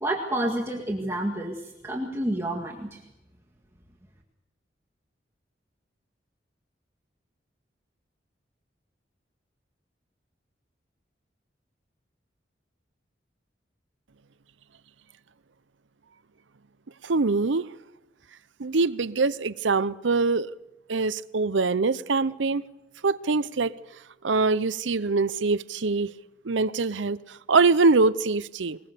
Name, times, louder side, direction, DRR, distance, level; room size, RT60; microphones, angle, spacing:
voice 1, 0.0-3.0, right 1 dB, 15° right, 1.9 m, -29 dB
voice 2, 17.0-17.7 18.6-20.5 20.9-22.6 23.0-23.7 24.2-26.1 26.4-28.8, right 3 dB, 85° right, 0.7 m, -23 dB
21.5 x 21.0 x 6.8 m
head